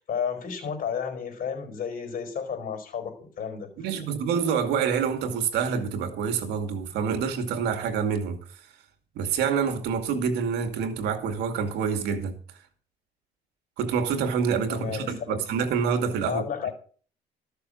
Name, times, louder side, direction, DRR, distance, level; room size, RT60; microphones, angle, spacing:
voice 1, 0.0-3.9 14.7-15.4 16.3-16.7, left 7 dB, 55° left, 4.4 m, -32 dB
voice 2, 3.8-8.4 9.1-12.4 13.8-16.4, right 6 dB, 80° right, 2.4 m, -27 dB
13.5 x 6.9 x 6.5 m
cardioid pair, 110°, 17 cm